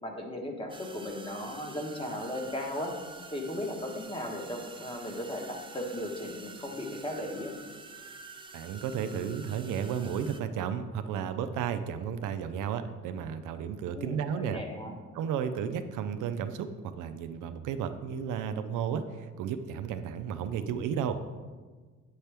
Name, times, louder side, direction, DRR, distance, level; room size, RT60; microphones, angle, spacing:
voice 1, 0.0-2.9 3.3-7.6 13.9-14.9, left 1 dB, 15° left, 1 dB, 1.2 m, -36 dB
sound 1, 0.7-10.4, right 3 dB, 15° right, 0.5 m, -48 dB
voice 2, 8.5-14.6 15.1-21.2, right 8 dB, 85° right, 9 dB, 0.5 m, -33 dB
8.5 x 4.3 x 3.4 m, 1.4 s
cardioid pair, 90°, 30 cm